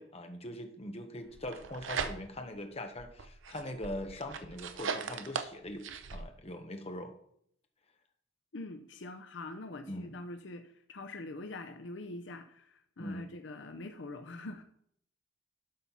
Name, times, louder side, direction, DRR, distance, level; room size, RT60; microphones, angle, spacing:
voice 1, 0.0-7.1 9.9-10.1 13.0-13.3, left 1 dB, 30° left, 5 dB, 1.0 m, -42 dB
sound 1, 1.3-2.5 3.0-6.2, right 5 dB, 75° right, 0.7 m, -39 dB
voice 2, 8.5-14.6, left 2 dB, 65° left, 8 dB, 0.6 m, -44 dB
11.5 x 4.2 x 5.6 m, 0.68 s
head